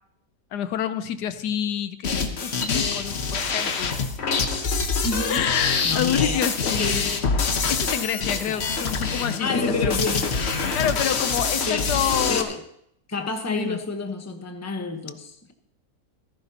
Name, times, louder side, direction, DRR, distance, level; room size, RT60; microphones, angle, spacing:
voice 1, 0.5-4.0 5.3-7.0 7.7-10.0 10.7-12.5 13.4-13.8, left 9 dB, 80° left, 12 dB, 1.3 m, -28 dB
sound 1, 2.0-12.4, left 4 dB, 45° left, 1.1 m, -25 dB
voice 2, 5.0-5.4 5.8-6.4 6.8-7.2 8.5-8.7 9.4-10.3 11.7-11.9 12.3-12.6 13.1-15.5, left 3 dB, 10° left, 4 dB, 0.9 m, -29 dB
15.5 x 14.0 x 2.9 m, 0.73 s
omnidirectional pair, 1.8 m